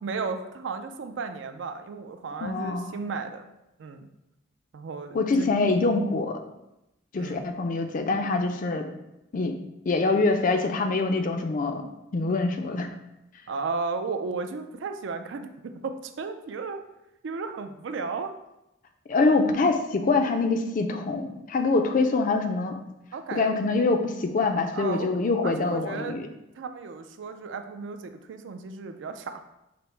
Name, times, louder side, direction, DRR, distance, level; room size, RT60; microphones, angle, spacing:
voice 1, 0.0-3.5 3.8-4.1 4.7-5.5 7.2-7.5 13.5-16.8 17.2-18.3 23.1-23.5 24.7-25.1 25.4-26.2 26.6-29.4, right 4 dB, 65° right, 8 dB, 0.4 m, -34 dB
voice 2, 2.4-2.9 5.1-6.4 7.1-8.9 9.3-9.5 9.9-11.8 12.1-12.9 19.1-22.8 23.3-26.3, left 3 dB, 40° left, 6 dB, 0.4 m, -24 dB
5.0 x 2.0 x 4.3 m, 0.90 s
head